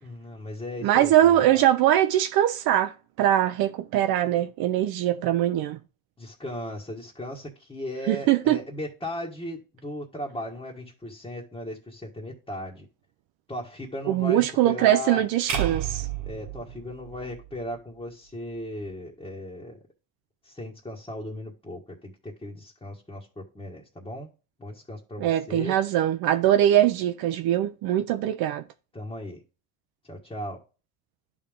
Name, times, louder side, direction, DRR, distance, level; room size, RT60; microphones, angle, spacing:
voice 1, 0.0-1.6 6.2-12.8 13.5-15.2 16.2-19.8 20.4-24.3 24.6-25.8 28.9-29.4 30.1-30.6, left 1 dB, 10° left, 1.6 m, -37 dB
voice 2, 0.8-5.8 8.1-8.6 14.1-16.1 25.2-28.6, right 12 dB, 70° right, 0.6 m, -22 dB
sound 1, 15.5-17.7, right 10 dB, 50° right, 1.4 m, -32 dB
11.0 x 3.6 x 3.6 m
supercardioid pair, 85°, 38 cm